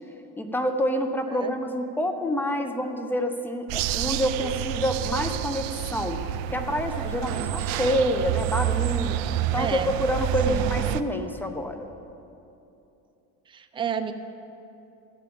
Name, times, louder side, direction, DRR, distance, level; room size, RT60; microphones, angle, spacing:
voice 1, 0.4-6.2 6.5-9.2 9.5-11.9, equal, 5° left, 6 dB, 0.9 m, -27 dB
sound 1, 3.7-11.0, right 12 dB, 75° right, 0.5 m, -28 dB
voice 2, 9.5-9.9 10.5-10.7 13.5-14.1, right 7 dB, 15° right, 7 dB, 0.5 m, -31 dB
14.0 x 5.2 x 8.7 m, 2.8 s
supercardioid pair, 105°, 34 cm